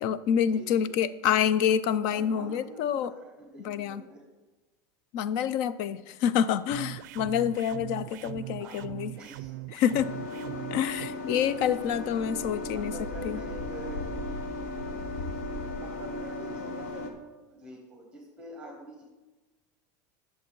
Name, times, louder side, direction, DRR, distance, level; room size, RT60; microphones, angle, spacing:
voice 1, 0.0-3.1 3.6-4.0 5.1-9.1 9.7-10.1 10.7-12.9 13.2-13.4, left 9 dB, 45° left, 16 dB, 0.4 m, -27 dB
voice 2, 0.5-0.9 2.1-4.2 8.6-8.8 9.2-9.6 12.7-14.1 15.3-15.4 15.7-17.1 17.5-19.0, right 1 dB, 10° right, -1 dB, 1.3 m, -45 dB
sound 1, 6.7-11.1, right 18 dB, 80° right, 0.4 m, -40 dB
sound 2, 9.9-17.1, left 2 dB, 60° left, 1.3 m, -36 dB
10.5 x 7.2 x 4.6 m, 1.2 s
supercardioid pair, 180°, 10 cm